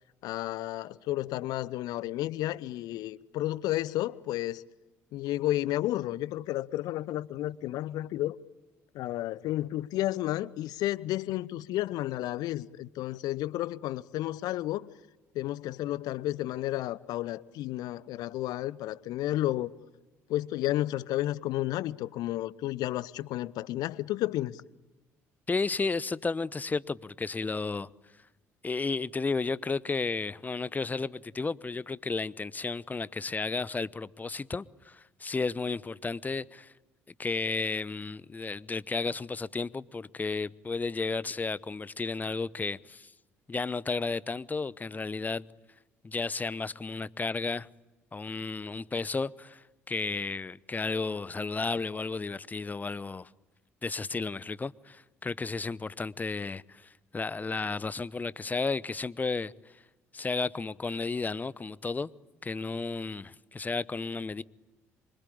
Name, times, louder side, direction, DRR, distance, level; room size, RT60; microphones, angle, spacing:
voice 1, 0.2-4.6 5.1-8.4 8.9-14.9 15.3-19.7 20.3-24.6, left 15 dB, 60° left, 0.8 m, -32 dB
voice 2, 25.5-27.9 28.6-36.7 37.2-43.1 43.5-45.5 46.0-47.7 48.1-53.3 53.8-59.5 60.1-62.1 62.4-64.4, left 4 dB, 20° left, 0.9 m, -33 dB
26.0 x 24.5 x 8.7 m
figure-of-eight pair, 50°, 8 cm